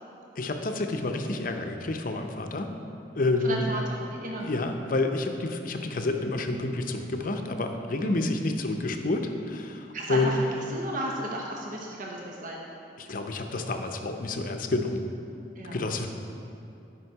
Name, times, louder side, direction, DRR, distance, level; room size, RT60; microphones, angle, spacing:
voice 1, 0.4-2.7 3.1-3.7 4.4-10.4 13.0-15.0 15.7-16.1, left 2 dB, 50° left, 5 dB, 0.6 m, -29 dB
voice 2, 3.4-4.5 8.0-8.2 9.9-10.4 10.7-12.6 15.6-16.1, right 1 dB, 50° right, -2 dB, 0.9 m, -34 dB
11.0 x 5.5 x 4.6 m, 2.7 s
head